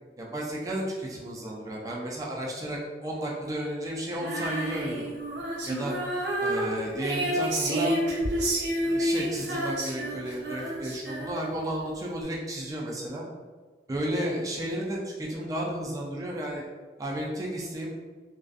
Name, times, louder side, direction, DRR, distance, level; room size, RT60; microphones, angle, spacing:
voice 1, 0.2-5.0 5.7-5.9 6.4-8.0 8.3-13.2 13.9-16.6 17.0-17.9, right 1 dB, 20° right, -3 dB, 0.3 m, -33 dB
Female singing, 4.2-11.7, right 1 dB, 70° right, 0.5 m, -29 dB
2.4 x 2.3 x 2.4 m, 1.4 s
head